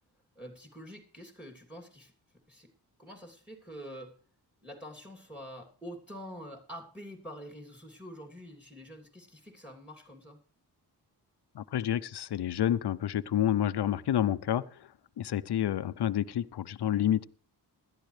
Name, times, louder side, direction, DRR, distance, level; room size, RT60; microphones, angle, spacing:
voice 1, 0.3-2.1 2.5-2.7 3.0-4.1 4.6-10.4, equal, 5° right, 4 dB, 2.8 m, -46 dB
voice 2, 11.5-14.9 15.2-17.2, left 11 dB, 70° left, 17 dB, 0.7 m, -29 dB
17.0 x 11.5 x 3.3 m, 0.41 s
cardioid pair, 45°, 41 cm